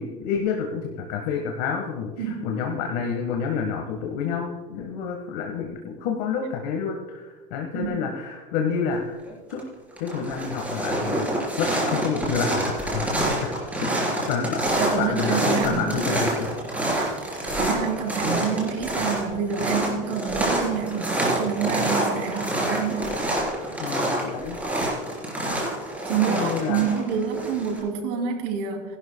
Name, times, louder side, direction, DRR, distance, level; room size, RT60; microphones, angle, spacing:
voice 1, 0.0-9.2 9.5-9.6 10.0-11.3 11.6-13.5 14.3-14.7 15.0-16.5 23.8-24.6 26.1-26.8, left 6 dB, 85° left, 2 dB, 1.5 m, -29 dB
sound 1, 9.2-9.6 9.9-27.8, right 1 dB, 5° right, 4.1 m, -27 dB
voice 2, 14.8-16.0 17.6-23.0 26.0-29.0, right 7 dB, 90° right, 2 dB, 2.9 m, -27 dB
20.5 x 12.0 x 2.3 m, 1.3 s
cardioid pair, 130°, 20 cm